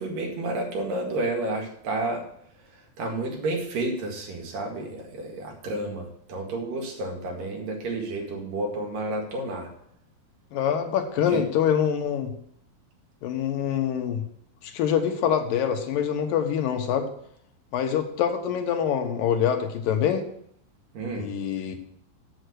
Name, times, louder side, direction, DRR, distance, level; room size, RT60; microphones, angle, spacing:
voice 1, 0.0-2.2 3.0-9.7 11.3-11.4 20.9-21.3, right 2 dB, 70° right, 0 dB, 3.6 m, -30 dB
voice 2, 10.5-12.3 13.2-14.2 14.6-17.1 17.7-20.2 21.1-21.8, left 8 dB, 75° left, 5 dB, 2.7 m, -25 dB
7.9 x 7.7 x 6.3 m, 0.69 s
omnidirectional pair, 4.1 m